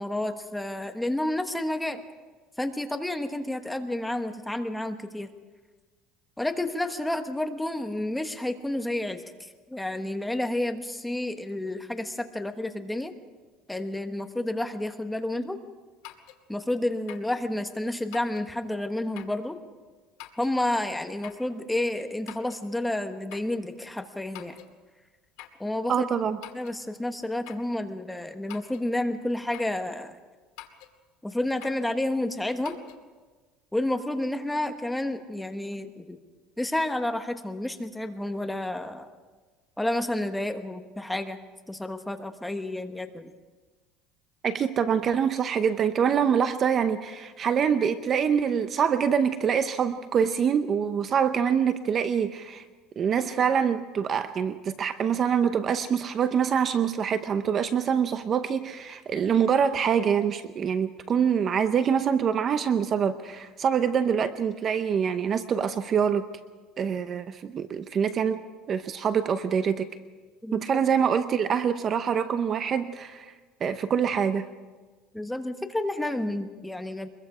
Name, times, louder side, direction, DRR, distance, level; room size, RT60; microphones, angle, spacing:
voice 1, 0.0-2.0 2.6-5.3 6.4-13.1 13.7-15.6 16.5-19.6 20.4-24.6 25.6-26.1 26.5-30.2 31.2-32.8 33.7-36.2 36.6-39.1 39.8-41.4 41.7-43.3 70.4-70.7 75.1-77.1, left 1 dB, 5° left, 6 dB, 1.2 m, -30 dB
sound 1, 16.0-16.4 17.1-17.3 18.1-18.5 19.2-19.4 20.2-20.6 21.2-21.5 22.3-22.7 23.3-23.5 24.3-24.7 25.4-25.7 26.4-26.8 27.5-27.7 28.5-28.9 29.5-29.8 30.6-31.0 31.6-31.9 32.7-33.0, left 14 dB, 80° left, 1.9 m, -45 dB
voice 2, 25.9-26.4 44.4-52.6 53.0-66.3 66.8-69.9 70.5-73.3 73.6-74.5, right 7 dB, 35° right, 11 dB, 0.8 m, -25 dB
24.0 x 22.0 x 5.0 m, 1.3 s
cardioid pair, 145°, 0 cm